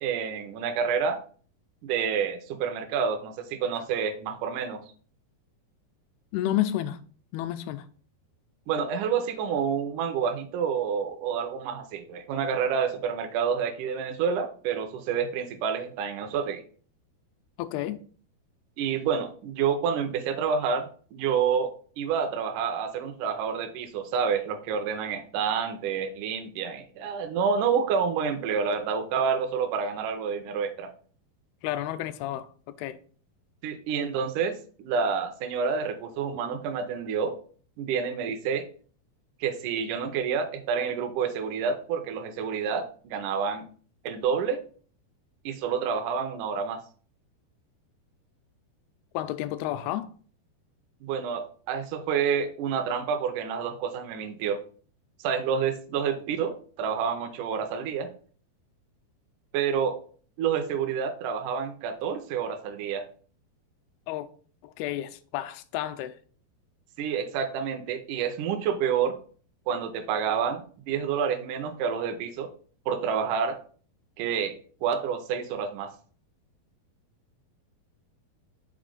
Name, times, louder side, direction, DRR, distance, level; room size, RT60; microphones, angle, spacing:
voice 1, 0.0-1.2 1.8-4.8 8.7-16.6 18.8-30.9 33.6-37.4 37.8-38.7 39.4-43.7 44.0-44.6 45.5-46.8 51.0-54.6 55.2-58.1 59.5-60.0 60.4-63.0 67.0-69.2 69.7-72.5 72.9-73.6 74.2-74.5 74.8-75.9, right 6 dB, 75° right, 1.9 m, -28 dB
voice 2, 6.3-7.0 7.3-7.9 17.6-18.0 31.6-33.0 49.1-50.1 64.1-64.3 64.6-66.2, left 13 dB, 90° left, 2.5 m, -31 dB
6.2 x 4.2 x 3.8 m
omnidirectional pair, 4.4 m